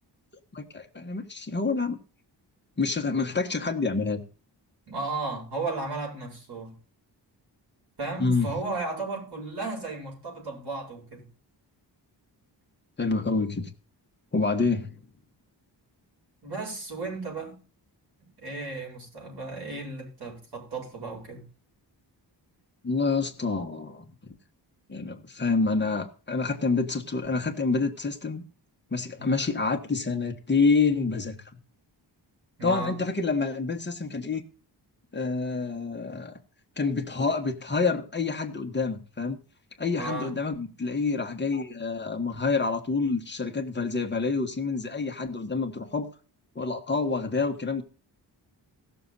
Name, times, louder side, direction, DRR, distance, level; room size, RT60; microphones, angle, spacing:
voice 1, 0.5-2.0 2.8-4.2 8.2-8.5 13.0-13.7 14.3-15.0 22.8-24.1 24.9-28.4 28.9-31.4 32.6-34.4 35.1-36.4 36.8-39.4 39.8-46.1 46.5-47.8, left 4 dB, 25° left, 1.5 m, -27 dB
voice 2, 4.9-6.7 8.0-11.2 16.4-17.6 18.4-21.4 29.2-29.4 32.6-33.0 40.0-40.3, right 3 dB, 60° right, 7.5 m, -34 dB
17.5 x 6.9 x 4.1 m
wide cardioid pair, 170°, 43 cm